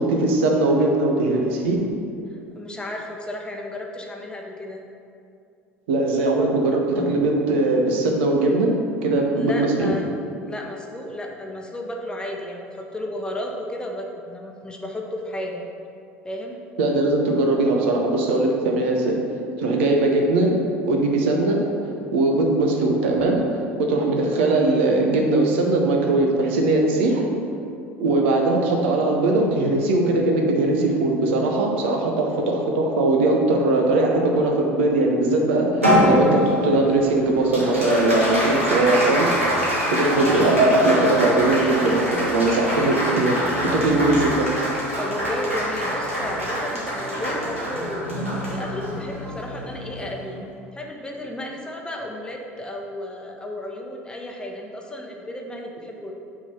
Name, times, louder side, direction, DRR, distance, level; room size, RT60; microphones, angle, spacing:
voice 1, 0.0-1.8 5.9-8.7 9.0-9.9 16.8-19.2 19.6-20.5 20.9-21.6 22.1-23.6 23.9-27.3 28.0-39.3 39.9-43.3 43.7-44.5, right 2 dB, 65° right, 1 dB, 0.9 m, -20 dB
voice 2, 2.6-4.8 9.4-10.1 10.4-15.6 16.2-16.6 44.0-44.1 45.0-50.4 50.7-56.1, left 1 dB, 15° left, 0 dB, 0.9 m, -33 dB
Applause, 35.8-50.5, equal, 90° right, 1.5 m, -24 dB
6.2 x 3.8 x 5.5 m, 2.5 s
figure-of-eight pair, 65°, 7 cm